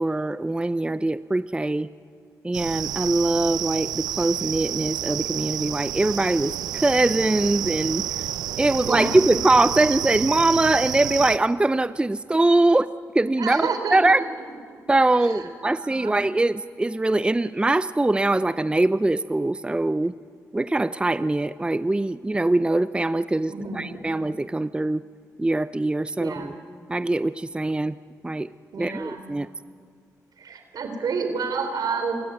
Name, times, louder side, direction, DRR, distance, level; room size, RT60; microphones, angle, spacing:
voice 1, 0.0-1.9 2.4-8.0 8.6-12.9 13.1-14.2 14.9-20.1 20.5-25.0 25.4-26.6 26.9-28.0 28.2-28.5 28.8-29.5, right 2 dB, 15° right, 15 dB, 0.5 m, -22 dB
sound 1, 2.5-11.4, right 12 dB, 90° right, 0.5 m, -30 dB
voice 2, 8.8-9.2 13.4-14.2 14.7-14.8 15.2-16.2 23.5-24.0 26.2-26.6 28.7-29.2 30.4-32.2, right 5 dB, 70° right, 7 dB, 3.5 m, -30 dB
28.5 x 13.5 x 9.6 m, 2.1 s
supercardioid pair, 55°, 7 cm